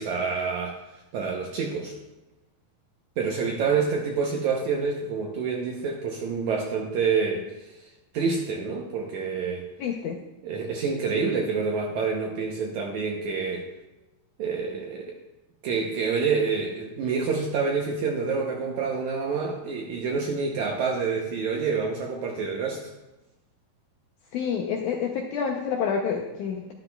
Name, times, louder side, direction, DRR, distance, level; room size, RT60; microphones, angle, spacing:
voice 1, 0.0-2.0 3.2-9.7 10.4-13.7 14.4-15.2 15.6-22.9, right 5 dB, 75° right, 0 dB, 1.7 m, -27 dB
voice 2, 9.8-10.2 24.3-26.7, left 6 dB, 80° left, 1 dB, 1.8 m, -28 dB
12.0 x 12.0 x 2.3 m, 0.99 s
omnidirectional pair, 4.3 m